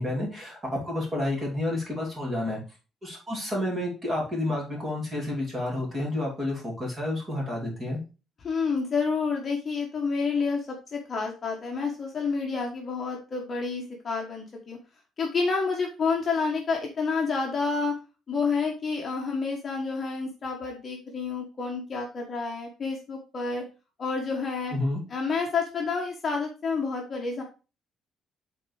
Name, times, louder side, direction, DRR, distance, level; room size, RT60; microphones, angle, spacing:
voice 1, 0.0-2.6 3.0-8.0 24.7-25.0, left 1 dB, 20° right, -2 dB, 2.9 m, -30 dB
voice 2, 8.4-10.7 10.9-14.8 15.2-17.9 18.3-23.6 24.0-24.7 25.1-27.4, left 4 dB, 25° left, 0 dB, 1.3 m, -29 dB
8.4 x 4.0 x 4.7 m, 0.32 s
cardioid pair, 175°, 0 cm